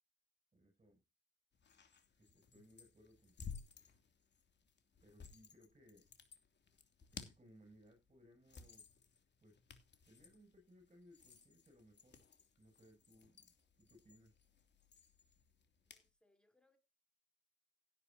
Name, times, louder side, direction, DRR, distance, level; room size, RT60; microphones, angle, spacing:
voice 1, 0.5-1.0 2.1-3.7 5.0-6.1 7.1-8.9 9.4-9.6 10.1-12.2 12.6-14.3, equal, 25° right, 7.6 m, -65 dB
sound 1, 1.5-16.1, left 6 dB, 35° left, 3.0 m, -57 dB
voice 2, 15.9-16.8, left 2 dB, 5° left, 4.2 m, -77 dB
16.0 x 9.6 x 2.9 m
supercardioid pair, 75°, 30 cm